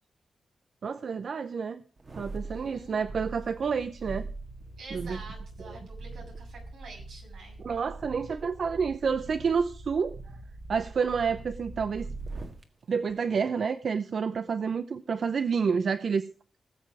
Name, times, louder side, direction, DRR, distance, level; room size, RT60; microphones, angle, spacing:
voice 1, 0.8-1.8 2.2-4.2 4.9-5.2 5.7-5.8 7.6-10.2 10.7-12.1 12.9-16.2, right 6 dB, 60° right, 12 dB, 0.6 m, -29 dB
sound 1, 2.0-12.6 13.1-13.2, right 3 dB, 40° right, 1.7 m, -42 dB
voice 2, 2.4-2.9 4.8-7.6, right 3 dB, 90° right, 0 dB, 7.0 m, -47 dB
19.0 x 7.5 x 4.7 m, 0.38 s
wide cardioid pair, 110°, 0 cm